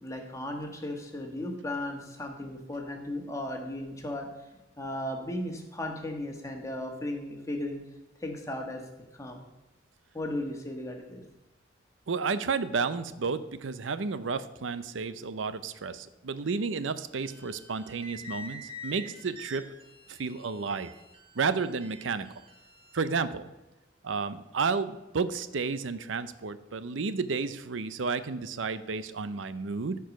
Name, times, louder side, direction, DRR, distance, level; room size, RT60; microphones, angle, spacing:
voice 1, 0.0-4.3 4.8-7.8 8.2-8.8 9.1-9.4 10.1-11.2, left 1 dB, 15° left, 2 dB, 1.5 m, -36 dB
voice 2, 12.1-19.7 20.1-20.9 21.3-22.3 22.9-23.4 24.0-30.0, right 4 dB, 85° right, 13 dB, 0.6 m, -31 dB
sound 1, 17.2-23.0, left 1 dB, 30° right, 1.4 m, -47 dB
14.0 x 4.7 x 6.0 m, 1.0 s
head